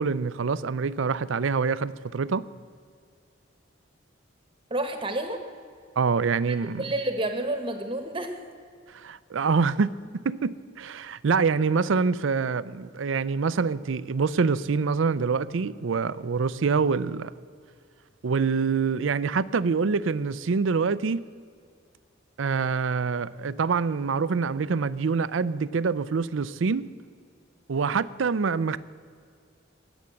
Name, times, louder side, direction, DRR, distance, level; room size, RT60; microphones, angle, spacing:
voice 1, 0.0-2.4 6.0-6.8 8.9-9.9 10.2-17.3 18.2-21.2 22.4-26.9 27.7-28.8, right 5 dB, 85° right, 0.5 m, -25 dB
voice 2, 4.7-5.4 6.5-8.3, right 1 dB, 25° right, 1.1 m, -30 dB
19.0 x 7.2 x 7.7 m
head